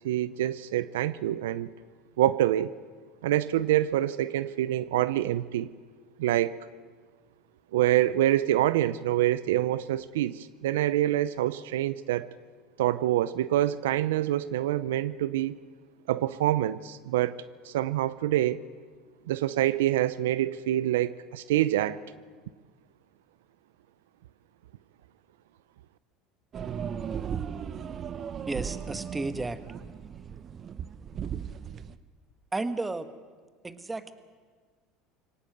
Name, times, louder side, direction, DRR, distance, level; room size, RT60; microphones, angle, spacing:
voice 1, 0.0-1.7 2.2-2.7 3.2-5.7 6.2-6.6 7.7-12.3 12.8-15.6 16.1-18.6 19.3-22.0, right 13 dB, 85° right, 16 dB, 0.6 m, -26 dB
sound 1, 26.5-31.9, right 8 dB, 40° right, 1.0 m, -36 dB
voice 2, 28.5-29.6 32.5-33.1 33.6-34.1, right 2 dB, 15° right, 10 dB, 1.6 m, -32 dB
24.0 x 18.0 x 7.9 m, 1.6 s
supercardioid pair, 95°, 0 cm